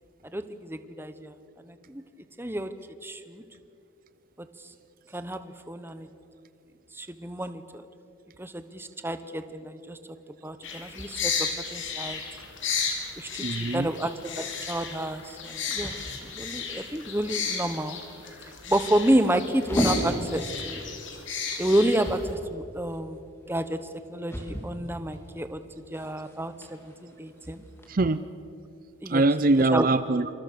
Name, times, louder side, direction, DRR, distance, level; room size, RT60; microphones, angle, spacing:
voice 1, 0.2-1.3 1.6-2.0 2.4-2.7 3.0-3.4 4.4-4.7 5.1-6.1 6.9-7.8 8.4-10.0 10.4-12.2 13.1-13.4 13.7-15.9 16.2-18.0 18.4-20.9 21.6-23.2 23.5-23.8 24.1-27.6 29.0-29.2 29.7-29.9, right 1 dB, 10° right, 11 dB, 1.1 m, -30 dB
sound 1, 10.6-22.3, left 6 dB, 65° left, 4.0 m, -34 dB
voice 2, 13.4-13.9 27.9-28.2 29.1-30.3, right 2 dB, 40° right, 13 dB, 0.5 m, -23 dB
sound 2, 15.6-27.9, equal, 10° left, 3.6 m, -37 dB
26.5 x 26.0 x 6.9 m, 2.6 s
head